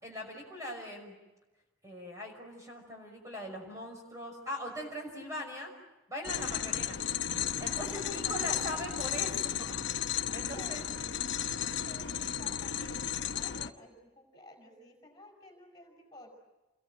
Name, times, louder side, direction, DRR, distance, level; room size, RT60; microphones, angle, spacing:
voice 1, 0.0-1.1 1.8-5.7 6.1-7.0 7.6-9.3 9.6-9.8 10.3-10.9, left 1 dB, 15° right, 1 dB, 5.8 m, -40 dB
sound 1, 6.2-13.7, left 9 dB, 60° left, 0.9 m, -34 dB
voice 2, 7.6-9.2 10.3-11.0 11.8-16.3, left 1 dB, 20° left, 1 dB, 6.0 m, -53 dB
sound 2, 7.9-8.1 8.8-9.2 11.2-12.1, right 1 dB, 40° right, 6.3 m, -58 dB
29.0 x 22.0 x 9.0 m, 1.1 s
head